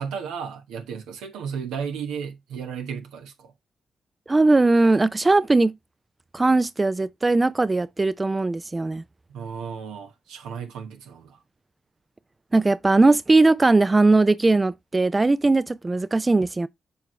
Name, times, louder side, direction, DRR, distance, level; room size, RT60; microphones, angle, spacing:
voice 1, 0.0-3.5 9.3-11.4, right 6 dB, 85° right, 1.0 m, -34 dB
voice 2, 4.3-5.7 6.3-9.0 12.5-16.7, right 2 dB, 30° right, 0.4 m, -19 dB
7.0 x 4.6 x 3.0 m
supercardioid pair, 45°, 0 cm